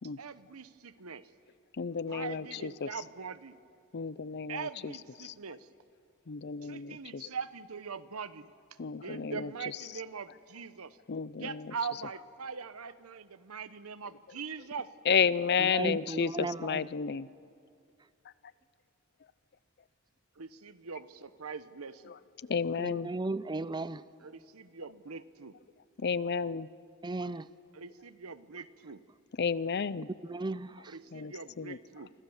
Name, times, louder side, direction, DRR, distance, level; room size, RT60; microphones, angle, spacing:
voice 1, 0.2-1.3 2.1-3.6 4.5-5.7 6.6-8.5 8.8-11.0 11.3-14.9 20.4-22.1 24.2-25.6 27.7-29.0 30.9-32.1, right 5 dB, 80° right, 14 dB, 1.0 m, -42 dB
voice 2, 1.8-2.9 3.9-4.9 5.2-5.3 6.3-7.3 8.8-9.5 11.1-11.7 15.1-17.3 22.4-23.1 26.0-26.7 27.2-27.3 29.4-30.1 31.1-31.8, left 6 dB, 50° left, 18 dB, 0.6 m, -32 dB
voice 3, 15.6-16.8 22.8-24.0 27.0-27.5 30.2-30.9, right 2 dB, 20° right, 16 dB, 0.5 m, -35 dB
28.5 x 25.0 x 7.2 m, 2.4 s
head